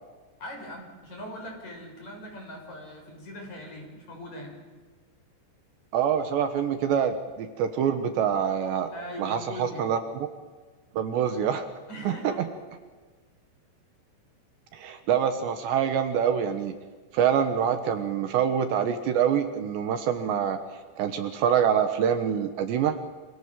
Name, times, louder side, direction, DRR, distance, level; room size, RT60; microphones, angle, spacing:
voice 1, 0.4-4.5 8.9-9.9 11.9-12.4, equal, 35° left, 1 dB, 7.6 m, -40 dB
voice 2, 5.9-8.9 9.2-10.0 11.0-11.7 12.1-12.2 14.7-16.7 17.1-20.6 21.0-23.0, right 8 dB, 70° right, 8 dB, 3.4 m, -25 dB
28.5 x 27.0 x 7.6 m, 1.4 s
omnidirectional pair, 5.4 m